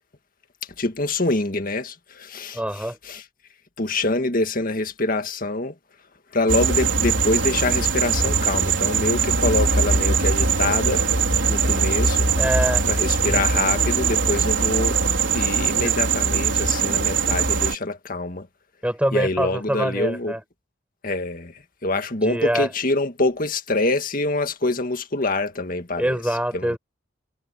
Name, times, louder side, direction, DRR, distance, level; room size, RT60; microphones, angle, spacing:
voice 1, 0.8-3.2 3.8-5.7 6.3-11.0 11.5-12.3 12.9-15.0 15.3-18.5 19.1-20.3 21.0-21.5 21.8-26.8, left 2 dB, 45° left, 1.9 m, -25 dB
voice 2, 2.5-3.0 12.4-12.9 13.2-13.4 15.8-15.9 18.8-20.4 22.2-22.7 26.0-26.8, equal, 5° right, 6.0 m, -24 dB
sound 1, 6.5-17.7, right 5 dB, 70° right, 4.1 m, -21 dB
head